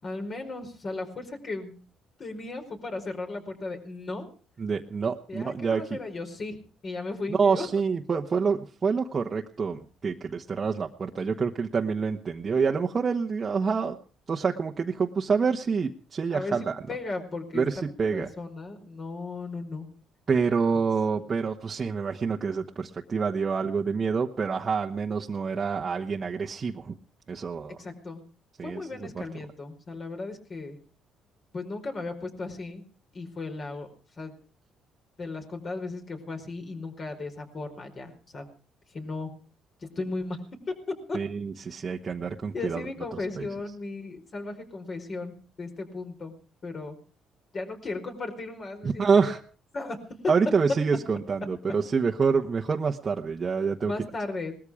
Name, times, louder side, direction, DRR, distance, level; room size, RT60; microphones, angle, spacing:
voice 1, 0.0-1.8 2.2-4.3 5.3-6.6 6.8-7.7 16.3-17.8 18.1-19.9 21.1-21.2 27.8-28.2 28.6-30.8 31.5-32.8 33.1-33.9 34.2-34.3 35.2-38.5 38.9-39.3 39.8-40.4 41.1-41.2 42.5-45.3 45.6-46.3 46.6-47.0 47.5-49.4 49.7-50.0 53.8-54.5, left 3 dB, 40° left, 5 dB, 4.7 m, -36 dB
voice 2, 4.6-6.0 7.3-14.0 14.3-16.8 17.5-18.3 20.3-26.9 27.3-27.7 28.6-28.8 29.1-29.2 41.1-42.8 43.4-43.5 48.8-49.4 50.3-53.9, right 5 dB, 35° right, 1 dB, 1.2 m, -27 dB
19.5 x 14.0 x 4.9 m, 0.39 s
cardioid pair, 95°, 0 cm